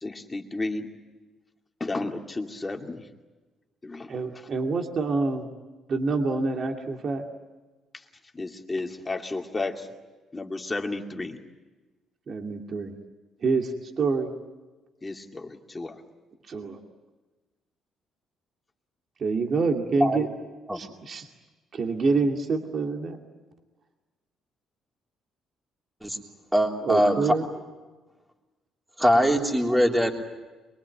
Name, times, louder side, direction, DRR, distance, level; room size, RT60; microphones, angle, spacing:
voice 1, 0.0-0.9 1.8-3.0 3.8-4.1 8.3-9.9 10.3-11.4 15.0-16.0, left 2 dB, 20° left, 3 dB, 2.4 m, -32 dB
voice 2, 4.1-5.5 5.9-7.2 12.3-13.0 13.4-14.3 16.5-16.8 19.2-20.3 20.7-21.3 21.7-23.2 26.8-27.4, right 4 dB, 45° right, 3 dB, 2.4 m, -26 dB
voice 3, 26.5-27.2 29.0-30.1, equal, 5° right, 1 dB, 3.5 m, -22 dB
23.5 x 23.0 x 9.0 m, 1.2 s
cardioid pair, 105°, 0 cm